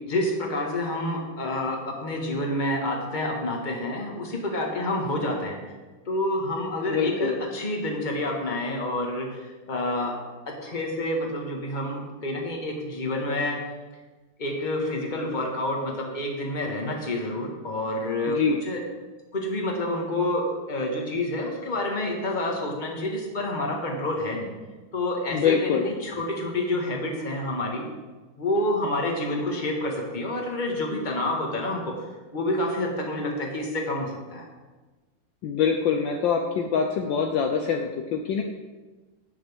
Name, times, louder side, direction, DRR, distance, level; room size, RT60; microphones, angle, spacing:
voice 1, 0.1-5.6 6.0-9.4 9.7-10.2 10.4-13.6 14.4-18.8 19.3-24.5 24.9-27.8 28.4-32.1 32.3-34.5, left 1 dB, 25° left, 0 dB, 1.6 m, -28 dB
voice 2, 6.9-7.4 18.3-18.6 25.3-25.9 35.4-38.4, left 6 dB, 70° left, 3 dB, 1.3 m, -24 dB
17.0 x 6.4 x 3.6 m, 1.3 s
omnidirectional pair, 2.4 m